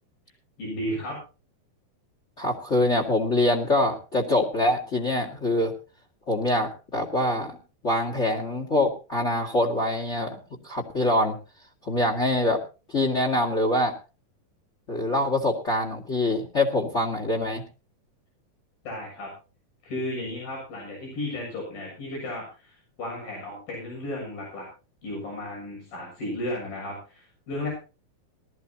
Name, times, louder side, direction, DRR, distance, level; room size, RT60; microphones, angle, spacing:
voice 1, 0.6-1.2 18.9-19.3 19.8-24.7 25.0-27.7, left 1 dB, 85° left, -1 dB, 9.0 m, -34 dB
voice 2, 2.4-5.7 6.3-7.6 7.8-10.4 10.6-11.4 11.8-12.6 12.9-13.9 14.9-17.6, left 1 dB, 25° left, 1 dB, 1.9 m, -24 dB
20.5 x 13.5 x 2.9 m, 0.33 s
omnidirectional pair, 4.0 m